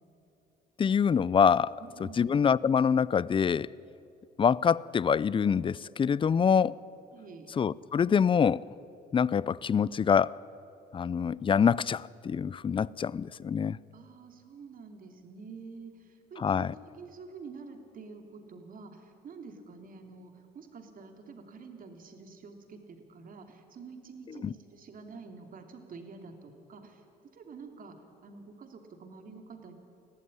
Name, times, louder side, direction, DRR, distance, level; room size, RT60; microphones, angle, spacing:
voice 1, 0.8-1.7 2.2-3.7 4.4-6.8 7.6-8.6 9.1-10.4 10.9-13.8 16.4-16.7 24.4-24.5, left 7 dB, 30° left, 0.5 m, -25 dB
voice 2, 1.8-2.3 7.1-7.5 13.9-27.0 27.3-29.7, right 4 dB, 50° right, 3.0 m, -48 dB
20.5 x 14.5 x 9.9 m
supercardioid pair, 80°, 19 cm